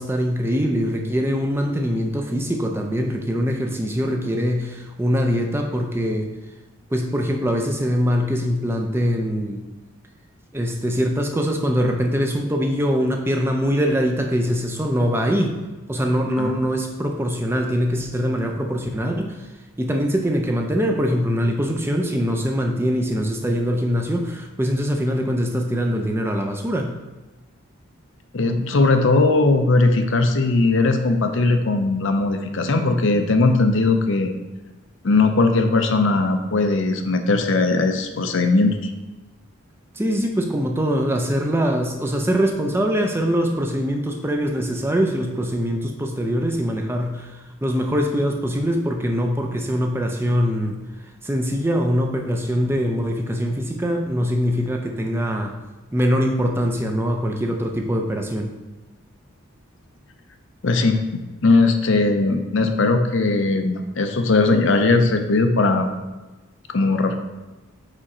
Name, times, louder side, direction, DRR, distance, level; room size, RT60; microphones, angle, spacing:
voice 1, 0.0-6.3 6.9-9.6 10.5-15.6 15.9-19.5 19.8-26.9 40.0-50.8 51.2-55.6 55.9-58.5, equal, 10° right, 3 dB, 0.4 m, -23 dB
voice 2, 28.3-34.3 35.0-38.9 60.6-61.0 61.4-65.9 66.7-67.2, left 3 dB, 60° left, 6 dB, 0.6 m, -19 dB
5.0 x 4.9 x 4.2 m, 1.1 s
head